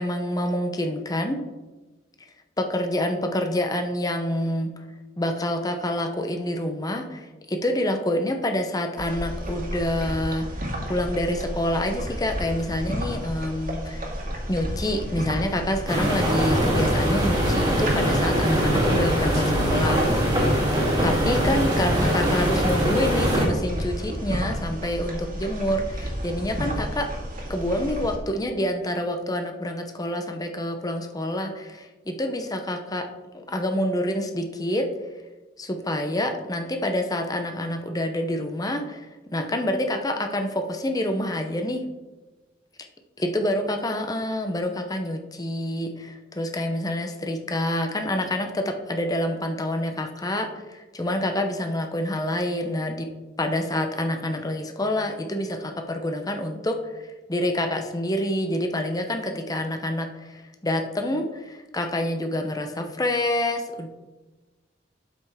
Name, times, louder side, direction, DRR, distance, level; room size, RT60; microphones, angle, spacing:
voice 1, 0.0-1.4 2.6-4.8 5.2-10.5 10.9-14.1 14.5-20.0 21.0-27.1 27.5-33.1 33.3-35.1 35.6-41.8 43.2-53.1 53.4-63.9, left 1 dB, 20° left, 5 dB, 0.7 m, -27 dB
sound 1, 9.0-28.2, equal, 45° right, 1.8 m, -32 dB
sound 2, 15.9-23.5, equal, 20° right, 2.0 m, -22 dB
12.0 x 5.6 x 3.5 m, 1.2 s
head